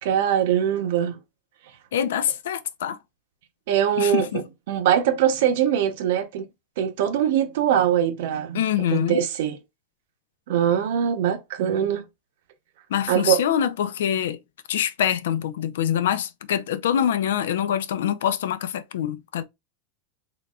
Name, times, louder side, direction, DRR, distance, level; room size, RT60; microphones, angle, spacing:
voice 1, 0.0-1.2 3.7-4.3 4.7-6.5 6.8-8.6 8.9-9.6 10.5-12.0 13.1-13.4, right 10 dB, 65° right, 0.9 m, -22 dB
voice 2, 1.9-3.0 4.0-4.4 8.5-9.2 12.9-14.4 14.7-19.4, left 9 dB, 85° left, 0.5 m, -25 dB
3.9 x 3.4 x 2.4 m
supercardioid pair, 150°, 0 cm